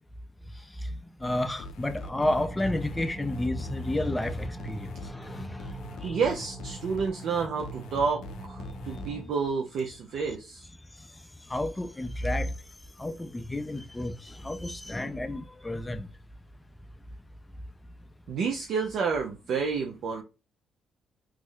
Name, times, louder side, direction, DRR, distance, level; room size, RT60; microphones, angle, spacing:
sound 1, 1.2-9.1, left 3 dB, 80° left, 0.3 m, -44 dB
voice 1, 1.2-5.7 6.0-6.2 11.5-12.5 13.0-16.1, left 1 dB, 15° left, 0.4 m, -31 dB
sound 2, 2.1-9.2, right 2 dB, 15° right, 0.9 m, -43 dB
voice 2, 6.0-10.7 18.3-20.2, right 5 dB, 70° right, 0.5 m, -30 dB
3.0 x 2.0 x 3.7 m
cardioid pair, 90°, 0 cm